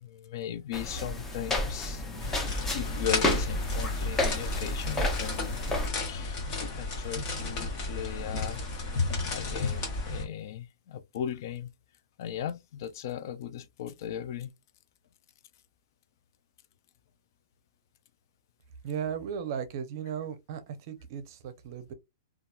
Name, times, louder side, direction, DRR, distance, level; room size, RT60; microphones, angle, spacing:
voice 1, 0.0-2.3 2.7-5.6 6.1-8.6 9.3-11.7 12.2-14.5, left 10 dB, 55° left, 0.3 m, -37 dB
sound 1, 0.7-5.9, left 1 dB, 15° left, 0.6 m, -31 dB
sound 2, 2.2-10.2, left 3 dB, 35° left, 1.1 m, -33 dB
voice 2, 18.8-21.9, right 8 dB, 45° right, 0.6 m, -36 dB
2.8 x 2.3 x 2.3 m
hypercardioid pair, 155°, 2 cm